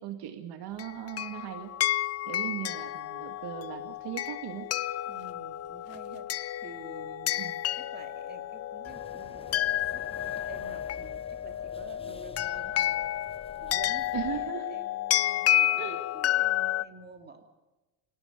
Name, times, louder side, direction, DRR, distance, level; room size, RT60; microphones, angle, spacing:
voice 1, 0.0-1.8 2.3-4.7 7.4-7.6 14.1-14.7 15.8-16.0, right 11 dB, 55° right, 7 dB, 2.2 m, -38 dB
sound 1, 0.8-16.8, left 13 dB, 30° left, 0.6 m, -31 dB
voice 2, 5.1-7.5 7.8-13.2 13.6-17.4, right 4 dB, 20° right, 5 dB, 2.9 m, -50 dB
sound 2, 8.8-14.5, left 4 dB, 10° left, 1.0 m, -50 dB
27.0 x 18.5 x 5.3 m, 1.1 s
cardioid pair, 135°, 48 cm